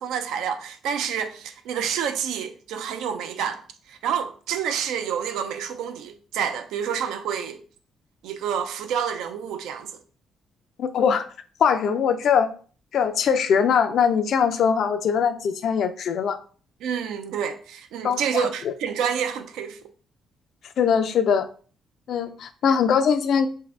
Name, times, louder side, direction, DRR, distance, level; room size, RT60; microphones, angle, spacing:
voice 1, 0.0-3.6 3.9-7.6 8.2-10.0 16.8-19.8, right 7 dB, 90° right, 0.3 m, -28 dB
voice 2, 10.8-11.3 11.6-12.5 12.9-16.4 18.0-18.7 20.8-21.5 22.1-23.5, left 7 dB, 65° left, 0.3 m, -21 dB
2.6 x 2.6 x 3.2 m
cardioid pair, 90°, 0 cm